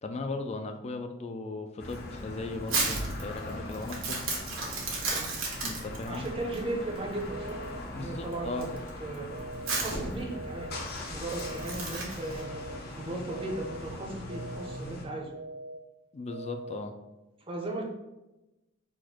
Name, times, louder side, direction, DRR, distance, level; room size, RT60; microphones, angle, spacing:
voice 1, 0.0-4.2 5.6-6.3 7.9-8.7 16.1-16.9, left 2 dB, 30° left, 6 dB, 0.4 m, -37 dB
sound 1, 1.8-15.1, left 1 dB, 50° left, 0.8 m, -41 dB
Crumpling crinkling, 1.9-12.4, right 3 dB, 90° right, 1.2 m, -35 dB
voice 2, 6.0-7.6 7.9-9.3 9.7-12.6 12.9-15.3 17.5-17.8, right 2 dB, 25° right, 0 dB, 0.6 m, -37 dB
sound 2, 7.3-7.8 8.3-8.8 9.3-9.8 10.3-10.8 11.3-11.8 12.3-12.8 13.3-13.8 14.3-14.8 15.3-15.8 16.3-16.8, right 2 dB, 70° right, 0.4 m, -42 dB
4.3 x 2.5 x 4.3 m, 1.0 s
head